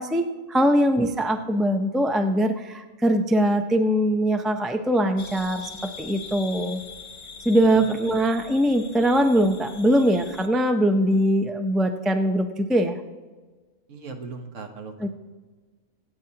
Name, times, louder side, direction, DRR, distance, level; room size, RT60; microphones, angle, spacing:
voice 1, 0.0-5.7 6.0-6.8 7.4-13.0 15.0-15.1, equal, ahead, 6 dB, 0.3 m, -22 dB
sound 1, 5.2-10.5, left 6 dB, 50° left, 1.0 m, -42 dB
voice 2, 7.7-8.2 13.9-15.1, right 4 dB, 65° right, 4 dB, 1.5 m, -40 dB
24.5 x 8.9 x 2.9 m, 1.4 s
omnidirectional pair, 1.4 m